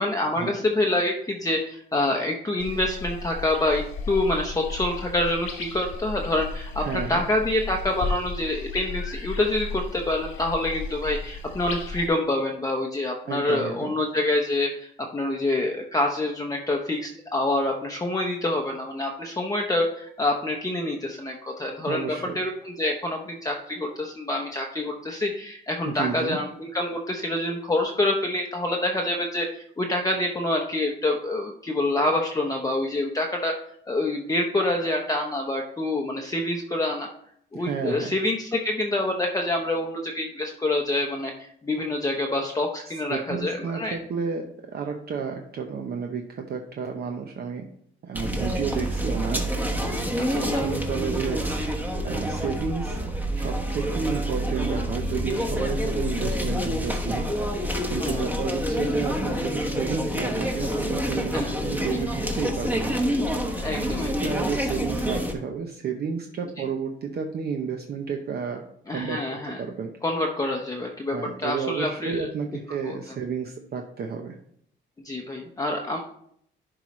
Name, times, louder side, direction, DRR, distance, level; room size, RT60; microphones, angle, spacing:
voice 1, 0.0-33.5 33.9-37.1 37.5-44.0 50.2-50.6 58.0-58.4 61.3-61.5 63.5-64.2 68.9-69.6 70.0-72.3 72.8-73.0 75.0-76.0, left 1 dB, 15° left, 1 dB, 0.7 m, -26 dB
sound 1, 2.6-12.1, left 3 dB, 85° left, 1.2 m, -34 dB
voice 2, 6.8-7.2 13.3-13.9 21.9-22.4 25.8-26.4 37.5-38.1 42.9-47.7 48.0-49.4 49.7-51.7 52.0-53.1 53.4-57.3 57.9-63.0 64.0-68.6 68.9-69.9 71.1-74.3, right 6 dB, 50° right, 3 dB, 0.7 m, -31 dB
sound 2, 48.1-65.3, equal, 10° right, 1.0 m, -27 dB
11.0 x 4.7 x 3.1 m, 0.67 s
cardioid pair, 130°, 21 cm